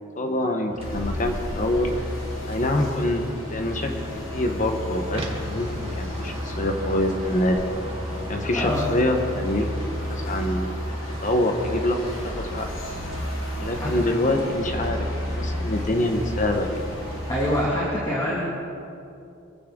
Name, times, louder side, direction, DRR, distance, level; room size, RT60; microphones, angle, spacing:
voice 1, 0.2-1.9 2.5-3.2 3.5-3.9 4.3-7.6 8.3-9.7 10.1-10.7 11.2-12.0 12.3-12.7 13.6-15.1 15.3-16.7, left 1 dB, 40° left, 4 dB, 1.3 m, -25 dB
sound 1, 0.7-17.9, right 1 dB, 30° right, 1.7 m, -39 dB
sound 2, 0.8-17.7, left 1 dB, 75° left, 3.1 m, -32 dB
voice 2, 17.3-18.5, equal, 20° left, -6 dB, 2.4 m, -25 dB
23.5 x 15.5 x 3.9 m, 2.7 s
head